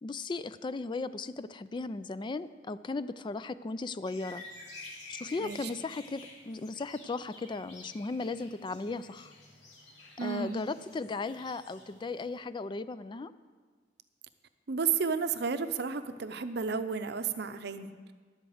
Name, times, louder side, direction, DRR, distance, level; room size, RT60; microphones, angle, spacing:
voice 1, 0.0-4.4 5.1-9.3 10.2-13.3, left 3 dB, 25° left, 14 dB, 0.3 m, -36 dB
sound 1, 4.1-12.4, left 2 dB, 75° left, 2.5 m, -51 dB
voice 2, 5.4-5.7 10.2-10.6 14.7-18.1, right 5 dB, 65° right, 11 dB, 0.7 m, -32 dB
11.0 x 8.0 x 7.8 m, 1.5 s
head